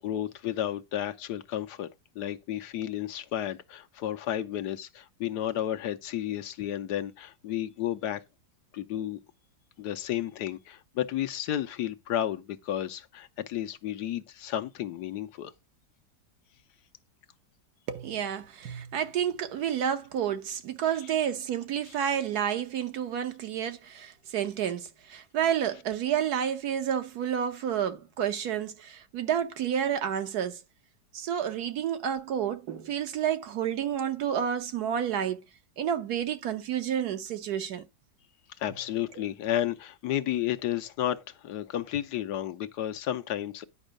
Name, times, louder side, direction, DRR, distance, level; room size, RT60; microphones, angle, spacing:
voice 1, 0.0-1.9 2.1-8.2 8.7-9.2 9.8-15.5 20.9-21.2 21.9-22.0 37.6-37.7 38.6-43.6, left 11 dB, 75° left, 1.3 m, -32 dB
voice 2, 17.9-30.6 31.1-35.4 35.8-37.8, right 9 dB, 65° right, 1.4 m, -30 dB
9.8 x 5.4 x 5.0 m
omnidirectional pair, 1.9 m